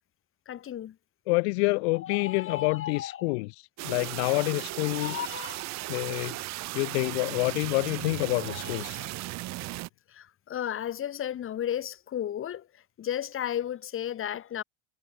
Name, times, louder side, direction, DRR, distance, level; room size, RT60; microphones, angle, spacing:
voice 1, 0.4-1.0 1.9-3.3 4.9-5.7 8.4-9.1 10.1-14.6, left 10 dB, 40° left, 6.8 m, -34 dB
voice 2, 1.3-5.1 5.9-6.3 6.7-9.0, left 29 dB, 90° left, 0.5 m, -28 dB
sound 1, 3.8-9.9, right 19 dB, 60° right, 1.7 m, -36 dB
supercardioid pair, 115°, 31 cm